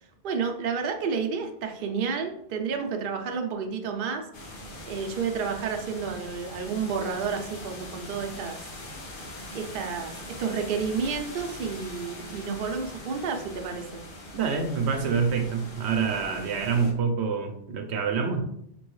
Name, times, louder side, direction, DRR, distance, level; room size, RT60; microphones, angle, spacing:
voice 1, 0.2-4.2 4.9-8.6 9.5-14.0, right 5 dB, 60° right, 4 dB, 0.7 m, -30 dB
sound 1, 4.3-16.9, left 1 dB, 55° left, 1.0 m, -42 dB
voice 2, 14.3-18.4, right 5 dB, 85° right, 5 dB, 0.9 m, -26 dB
5.3 x 3.0 x 3.1 m, 0.75 s
omnidirectional pair, 1.1 m